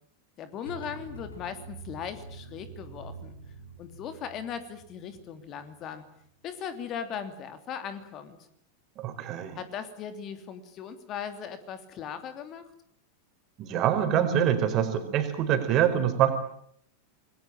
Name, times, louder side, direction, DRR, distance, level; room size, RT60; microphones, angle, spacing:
voice 1, 0.4-3.4 3.8-6.0 6.4-8.5 9.6-12.6, left 7 dB, 35° left, 10 dB, 3.0 m, -38 dB
sound 1, 0.6-6.3, right 3 dB, 75° left, 4.6 m, -46 dB
voice 2, 9.0-9.6 13.6-16.3, right 10 dB, 35° right, 7 dB, 4.6 m, -25 dB
27.5 x 21.5 x 8.9 m, 0.66 s
figure-of-eight pair, 90°, 0 cm